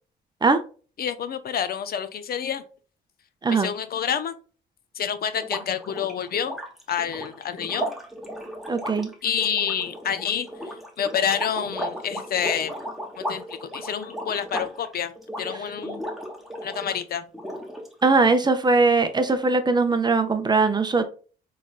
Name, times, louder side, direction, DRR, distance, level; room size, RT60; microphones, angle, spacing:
voice 1, 1.0-2.6 3.5-4.4 4.9-6.6 6.9-7.9 9.2-12.9 13.2-15.1 15.4-16.0 16.6-17.2 18.2-18.3, left 8 dB, 50° left, 12 dB, 0.5 m, -28 dB
sound 1, 5.4-17.0 17.3-18.2, equal, ahead, 1.0 m, -35 dB
voice 2, 8.7-9.1 18.0-21.0, right 3 dB, 20° right, 8 dB, 0.5 m, -20 dB
4.0 x 3.2 x 2.4 m, 0.38 s
cardioid pair, 90°, 20 cm